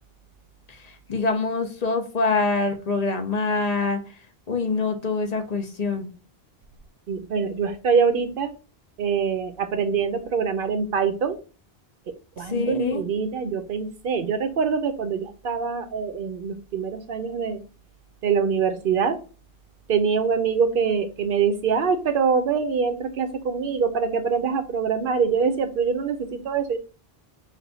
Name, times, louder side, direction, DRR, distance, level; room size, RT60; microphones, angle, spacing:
voice 1, 0.7-4.0 4.5-6.1 12.4-13.0, left 3 dB, 45° left, 0.8 m, -25 dB
voice 2, 7.1-8.5 9.0-11.4 12.4-17.6 18.2-19.2 19.9-26.8, right 6 dB, 65° right, 0.7 m, -24 dB
3.4 x 2.6 x 3.9 m
omnidirectional pair, 1.0 m